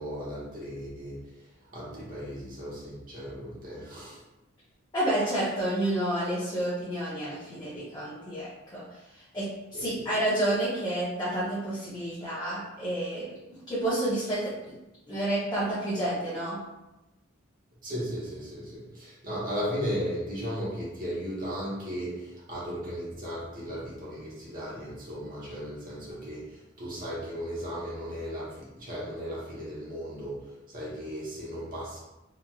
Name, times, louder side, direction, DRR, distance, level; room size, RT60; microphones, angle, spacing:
voice 1, 0.0-1.3 1.7-4.2 9.7-10.1 17.8-32.0, equal, 45° right, -7 dB, 1.0 m, -36 dB
voice 2, 4.9-8.8 9.1-13.3 13.7-14.5 15.1-16.6, right 1 dB, 20° left, -9 dB, 0.6 m, -29 dB
3.0 x 2.4 x 2.3 m, 0.98 s
head